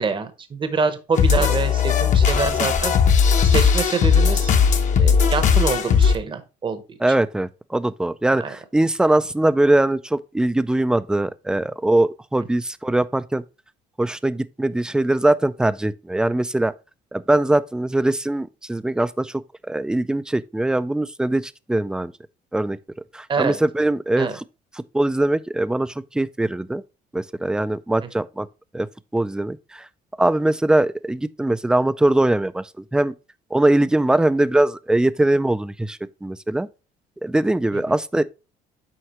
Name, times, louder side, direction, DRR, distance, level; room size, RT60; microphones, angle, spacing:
voice 1, 0.0-2.9 3.4-4.5 5.0-7.2 8.4-8.6 23.3-23.6 24.2-24.4 37.7-37.8, right 5 dB, 30° right, 0.8 m, -26 dB
sound 1, 1.2-6.2, left 6 dB, 45° left, 0.9 m, -17 dB
voice 2, 7.0-13.4 14.0-16.7 17.1-19.3 19.7-22.1 22.5-22.8 23.1-24.3 24.9-26.8 27.1-28.5 28.7-28.9 29.1-29.8 30.2-32.6 32.9-33.1 33.5-36.7 37.2-38.2, right 1 dB, 5° right, 0.3 m, -21 dB
7.9 x 4.7 x 3.0 m
cardioid pair, 110°, 17 cm